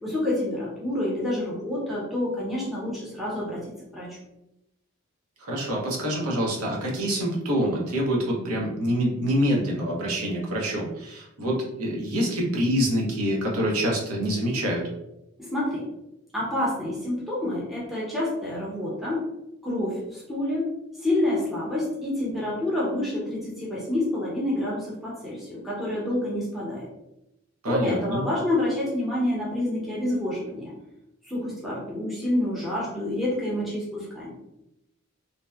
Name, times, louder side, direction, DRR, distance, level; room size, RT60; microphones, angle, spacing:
voice 1, 0.0-3.6 3.9-4.2 15.4-15.9 16.3-19.2 19.6-20.7 21.0-26.9 27.7-30.7 31.2-34.3, left 1 dB, ahead, -7 dB, 0.6 m, -28 dB
voice 2, 5.4-14.8 27.6-28.2, equal, 85° right, -2 dB, 0.7 m, -26 dB
2.7 x 2.0 x 2.2 m, 0.88 s
head